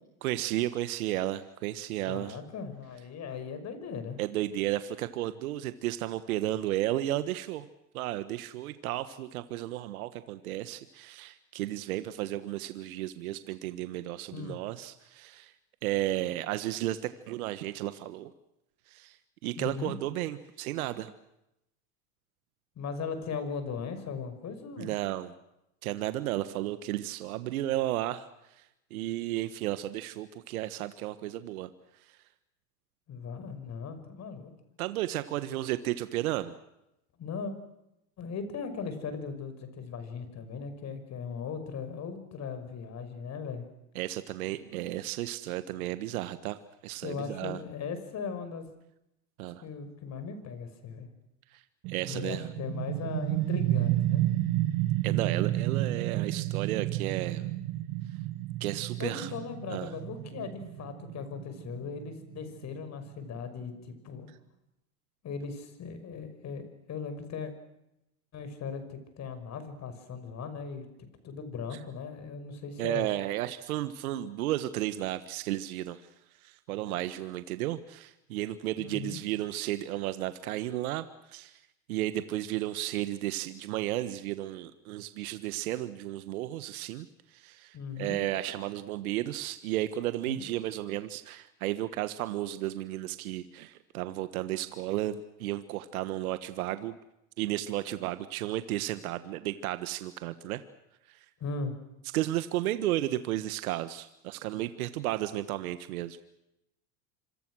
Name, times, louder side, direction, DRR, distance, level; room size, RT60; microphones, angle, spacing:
voice 1, 0.2-2.4 4.2-7.7 7.9-15.5 15.8-17.0 17.3-18.3 18.9-19.2 19.4-21.1 24.8-25.3 25.8-28.3 28.6-28.7 28.9-31.7 34.8-36.5 43.9-46.6 46.8-47.6 49.4-49.6 51.9-52.5 55.0-57.4 58.6-59.3 59.7-59.9 71.7-71.8 72.8-76.0 76.4-81.0 81.3-81.6 81.9-87.1 87.3-96.9 97.4-100.6 101.1-101.2 102.1-106.2, right 14 dB, 80° right, 12 dB, 1.5 m, -33 dB
voice 2, 2.1-4.2 14.3-14.6 19.6-19.9 22.8-24.9 33.1-34.5 37.2-37.5 38.2-43.7 47.0-48.7 49.6-51.1 52.1-54.2 59.0-64.3 65.2-66.6 66.9-67.5 68.3-73.1 78.8-79.2 87.7-88.2 90.3-90.4 101.4-101.7, left 5 dB, 40° left, 9 dB, 5.8 m, -38 dB
sound 1, 51.8-63.3, right 15 dB, 60° right, 1.8 m, -31 dB
26.5 x 26.0 x 6.3 m, 0.86 s
supercardioid pair, 105°, 43 cm